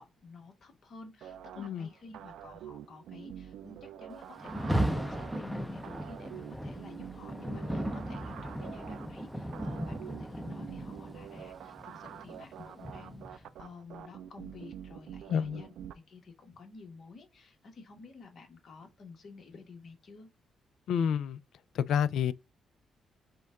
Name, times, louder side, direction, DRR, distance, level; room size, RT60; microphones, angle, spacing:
voice 1, 0.0-15.7 16.1-20.3, left 4 dB, 60° left, 1.2 m, -51 dB
sound 1, 1.2-15.9, right 10 dB, 85° right, 0.3 m, -47 dB
voice 2, 1.6-1.9 15.3-15.6 20.9-21.4 21.7-22.3, left 8 dB, 80° left, 0.3 m, -29 dB
Rain, 4.4-13.5, right 1 dB, ahead, 0.5 m, -36 dB
5.1 x 2.3 x 3.5 m
cardioid pair, 90°, 0 cm